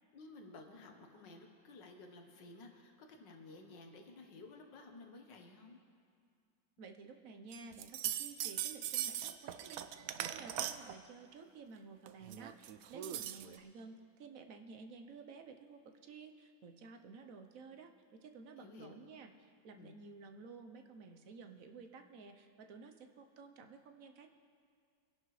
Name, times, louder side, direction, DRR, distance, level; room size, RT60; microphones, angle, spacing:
voice 1, 0.1-5.8 18.6-19.0 19.7-19.9, left 3 dB, 70° left, 3 dB, 1.8 m, -54 dB
voice 2, 6.8-24.3, right 4 dB, 60° right, 6 dB, 1.0 m, -53 dB
sound 1, 7.5-11.0 12.1-13.6, right 11 dB, 80° right, 0.8 m, -40 dB
23.5 x 11.5 x 3.2 m, 2.2 s
omnidirectional pair, 2.0 m